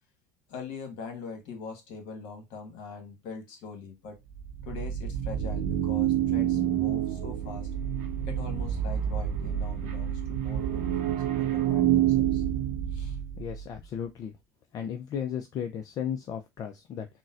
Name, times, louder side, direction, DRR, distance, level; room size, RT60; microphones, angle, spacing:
voice 1, 0.5-4.2 4.6-7.7 8.2-12.4 12.9-13.2, left 5 dB, 60° left, 1.3 m, -42 dB
sound 1, 4.3-13.7, right 11 dB, 70° right, 0.6 m, -28 dB
voice 2, 13.4-14.4 14.7-17.1, left 8 dB, 45° left, 0.4 m, -35 dB
3.9 x 2.1 x 2.4 m
hypercardioid pair, 85°, 9 cm